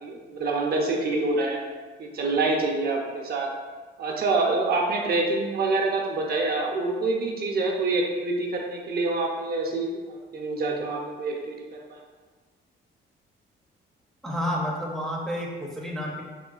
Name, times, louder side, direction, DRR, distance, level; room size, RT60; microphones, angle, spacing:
voice 1, 0.0-1.6 2.0-3.5 4.0-11.5 11.9-12.0, right 3 dB, 50° right, 0 dB, 0.5 m, -26 dB
voice 2, 14.2-16.2, equal, ahead, -3 dB, 0.5 m, -30 dB
3.6 x 2.2 x 2.3 m, 1.4 s
cardioid pair, 90°, 20 cm